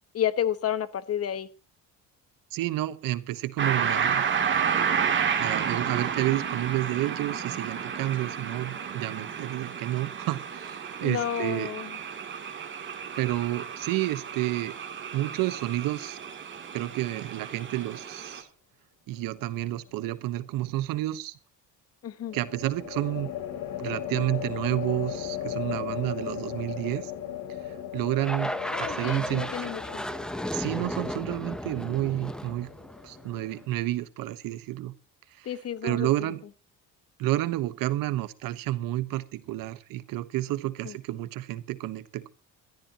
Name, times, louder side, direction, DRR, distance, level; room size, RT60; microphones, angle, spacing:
voice 1, 0.1-1.5 11.0-12.0 22.0-22.4 28.7-30.0 35.4-36.3 40.8-41.0, left 10 dB, 45° left, 1.3 m, -31 dB
voice 2, 2.5-4.2 5.3-11.7 13.1-14.7 15.1-16.2 16.7-18.5 19.1-21.3 22.3-23.3 23.8-27.1 27.9-29.7 30.5-32.7 33.0-34.9 35.4-35.5 35.8-36.4 37.2-42.3, right 15 dB, 85° right, 1.3 m, -30 dB
sound 1, 3.6-18.4, right 7 dB, 35° right, 2.8 m, -31 dB
sound 2, 19.2-19.8 22.3-33.7, left 10 dB, 75° left, 3.7 m, -37 dB
sound 3, 28.2-33.5, equal, ahead, 0.9 m, -34 dB
22.5 x 13.5 x 2.9 m
cardioid pair, 140°, 33 cm